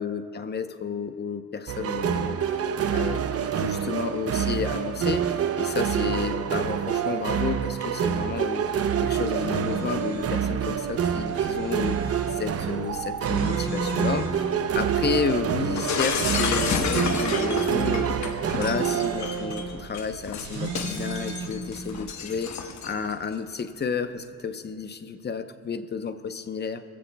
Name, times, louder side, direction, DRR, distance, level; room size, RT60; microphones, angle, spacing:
voice 1, 0.0-2.4 2.9-3.3 3.6-8.7 9.0-12.0 12.3-14.4 14.7-18.1 18.6-22.5 22.8-26.8, left 5 dB, 35° left, 9 dB, 0.8 m, -31 dB
sound 1, 1.7-19.8, right 8 dB, 55° right, 0.7 m, -27 dB
sound 2, 9.1-22.0, right 3 dB, 75° right, 3.3 m, -37 dB
Shatter, 15.8-23.1, left 6 dB, 65° left, 1.1 m, -31 dB
21.5 x 15.0 x 2.3 m, 2.4 s
cardioid pair, 90°, 30 cm